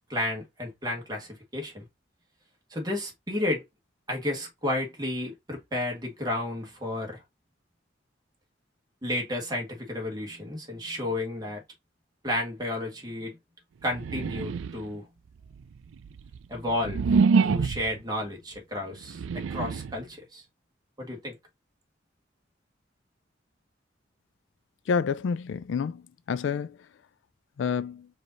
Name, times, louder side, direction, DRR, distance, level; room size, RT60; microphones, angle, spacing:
voice 1, 0.1-1.9 2.7-3.6 4.1-7.2 9.0-11.6 12.2-13.4 13.8-15.1 16.5-17.0 17.4-20.4 21.0-21.4, left 1 dB, 20° right, 1.5 m, -32 dB
sound 1, 13.9-15.0 15.6-18.0 18.9-20.0, right 5 dB, 90° right, 0.4 m, -26 dB
voice 2, 24.9-26.8 27.6-28.1, left 6 dB, 70° left, 0.3 m, -29 dB
4.9 x 2.8 x 3.8 m
head